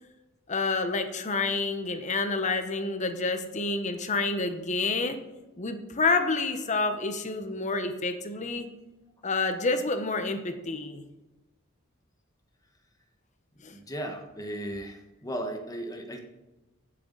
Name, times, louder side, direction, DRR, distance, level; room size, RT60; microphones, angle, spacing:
voice 1, 0.5-5.2 5.6-8.7 9.2-11.0 13.6-13.8, left 3 dB, 35° left, 8 dB, 1.0 m, -28 dB
voice 2, 13.7-16.3, right 1 dB, 15° left, 4 dB, 1.3 m, -36 dB
15.0 x 7.7 x 4.0 m, 1.0 s
head